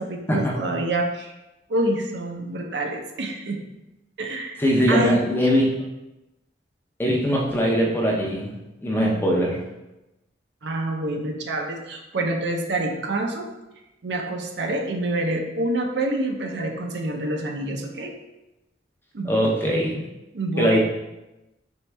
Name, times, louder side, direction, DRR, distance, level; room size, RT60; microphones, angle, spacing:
voice 1, 0.0-1.3 1.7-3.6 4.2-4.6 4.9-5.2 9.0-9.2 10.6-13.5 14.0-18.2 19.1-19.3 20.3-20.8, right 1 dB, 70° right, 2 dB, 0.6 m, -27 dB
voice 2, 4.6-5.7 7.0-8.5 8.8-9.6 19.2-20.0 20.6-20.8, equal, 10° left, -2 dB, 0.6 m, -21 dB
4.5 x 3.1 x 3.3 m, 0.97 s
head